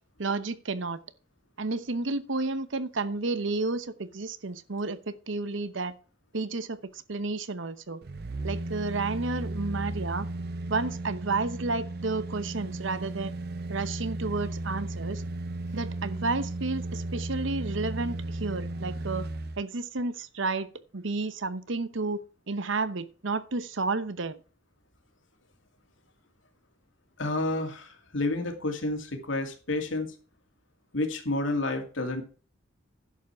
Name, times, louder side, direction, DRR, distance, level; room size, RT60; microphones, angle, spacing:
voice 1, 0.2-1.0 1.6-6.0 6.3-8.0 8.4-10.3 10.7-13.4 13.7-15.2 15.7-19.3 19.6-24.4, right 3 dB, 75° right, 0.9 m, -31 dB
sound 1, 8.0-19.6 20.0-20.1, right 2 dB, 50° right, 0.7 m, -35 dB
voice 2, 27.2-30.1 30.9-32.2, left 2 dB, 75° left, 2.6 m, -30 dB
11.0 x 7.6 x 4.6 m
head